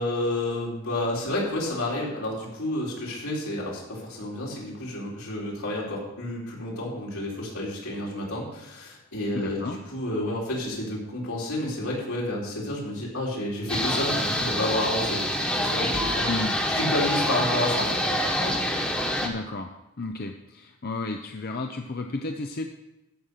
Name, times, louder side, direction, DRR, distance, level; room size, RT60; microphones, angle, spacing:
voice 1, 0.0-15.2 15.6-16.3 16.7-18.0 18.4-18.5, left 1 dB, 85° left, -4 dB, 4.1 m, -30 dB
voice 2, 9.3-9.8 16.3-16.6 19.2-19.7 20.0-22.7, left 3 dB, 45° left, 4 dB, 0.7 m, -32 dB
sound 1, 13.7-19.3, left 1 dB, 5° left, 1.3 m, -26 dB
14.0 x 6.4 x 5.6 m, 0.93 s
head